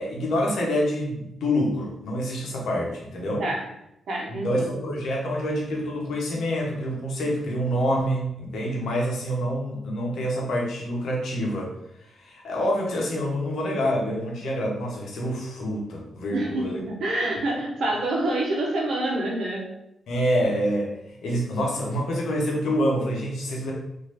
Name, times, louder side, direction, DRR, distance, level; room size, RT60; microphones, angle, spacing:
voice 1, 0.0-3.4 4.3-11.7 12.1-16.8 17.5-17.6 20.1-23.7, equal, 75° left, -1 dB, 0.9 m, -27 dB
voice 2, 4.1-4.8 16.3-19.7, right 1 dB, 70° right, -1 dB, 0.9 m, -27 dB
3.1 x 2.6 x 2.8 m, 0.82 s
supercardioid pair, 55°, 0 cm